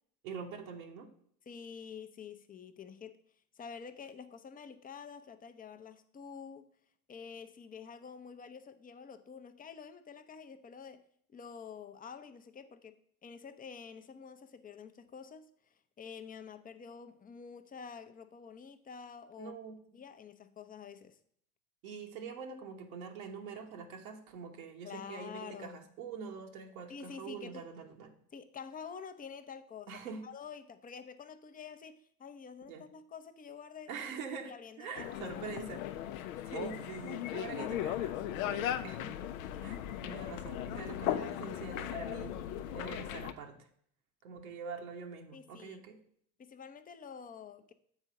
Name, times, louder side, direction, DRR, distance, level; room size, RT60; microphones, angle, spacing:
voice 1, 0.2-1.1 19.4-19.8 21.8-28.2 29.9-30.2 32.7-32.8 33.9-35.9 36.4-39.1 39.6-42.4 42.7-43.6 44.2-46.0, right 6 dB, 70° right, 1.2 m, -44 dB
voice 2, 1.5-3.2 3.5-6.7 7.1-11.0 11.3-15.5 16.0-19.5 19.9-21.2 24.8-25.8 26.9-27.7 28.3-33.9 34.5-35.8 39.6-39.7 45.3-45.9 46.4-47.7, left 6 dB, 20° left, 0.7 m, -48 dB
sound 1, 35.0-43.3, left 11 dB, 65° left, 0.7 m, -37 dB
7.3 x 4.5 x 6.4 m
figure-of-eight pair, 65°, 44 cm